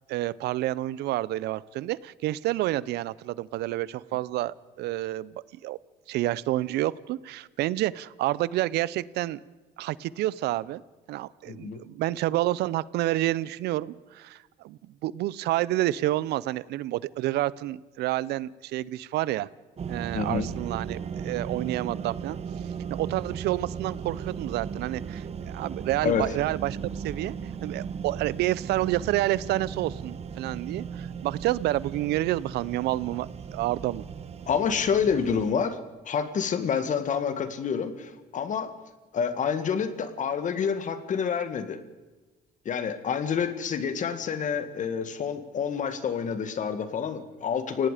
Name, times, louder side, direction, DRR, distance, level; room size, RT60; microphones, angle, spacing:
voice 1, 0.1-5.8 6.1-9.4 9.8-10.8 11.1-19.5 19.9-22.4 22.9-27.3 27.6-34.1, right 16 dB, 80° right, 21 dB, 0.7 m, -29 dB
voice 2, 11.5-11.8 20.1-20.5 26.0-26.3 34.5-35.8 36.1-38.7 39.1-41.8 42.7-47.9, left 7 dB, 50° left, 10 dB, 1.9 m, -28 dB
sound 1, 19.8-35.5, right 7 dB, 35° right, 1.1 m, -37 dB
29.5 x 18.0 x 5.1 m, 1.2 s
cardioid pair, 110°, 17 cm